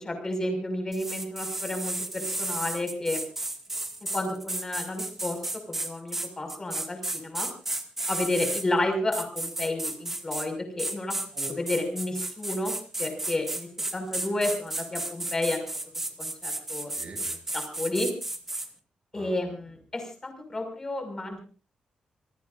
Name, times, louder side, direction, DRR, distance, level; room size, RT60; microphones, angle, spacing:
voice 1, 0.0-3.2 4.1-5.4 5.7-7.5 8.1-11.2 11.5-12.7 13.0-15.6 16.2-16.9 17.5-18.1 19.1-21.4, left 1 dB, 25° left, 5 dB, 6.0 m, -31 dB
sound 1, 0.9-8.6 9.1-10.5 10.8-18.7, right 2 dB, 15° right, 2.1 m, -33 dB
voice 2, 16.9-17.3 19.1-19.5, right 4 dB, 55° right, 3 dB, 7.3 m, -43 dB
27.5 x 19.5 x 2.6 m, 0.38 s
wide cardioid pair, 145°, 2 cm